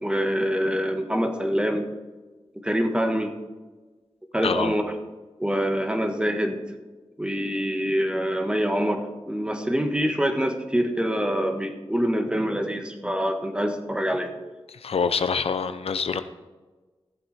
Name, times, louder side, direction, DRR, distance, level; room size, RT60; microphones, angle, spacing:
voice 1, 0.0-1.8 2.5-3.3 4.3-4.8 5.4-6.6 7.2-14.3, equal, 10° right, 5 dB, 1.5 m, -25 dB
voice 2, 4.4-4.7 14.7-16.2, left 5 dB, 85° left, 10 dB, 0.7 m, -26 dB
14.5 x 7.7 x 4.4 m, 1.3 s
wide cardioid pair, 70°, 10 cm